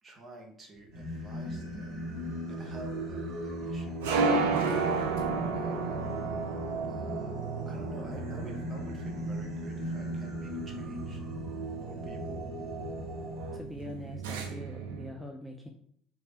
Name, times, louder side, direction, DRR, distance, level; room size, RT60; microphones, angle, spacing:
voice 1, 0.0-2.2 2.5-6.1 6.9-7.3 7.7-11.2 11.8-12.5, right 1 dB, 35° right, 2 dB, 1.0 m, -50 dB
Singing, 0.9-13.6, equal, 55° right, 1.1 m, -37 dB
sound 1, 1.0-15.1, right 4 dB, 75° right, 0.5 m, -34 dB
voice 2, 13.5-15.7, equal, 5° right, 1 dB, 0.4 m, -43 dB
3.3 x 2.4 x 4.1 m, 0.66 s
hypercardioid pair, 65°, 0 cm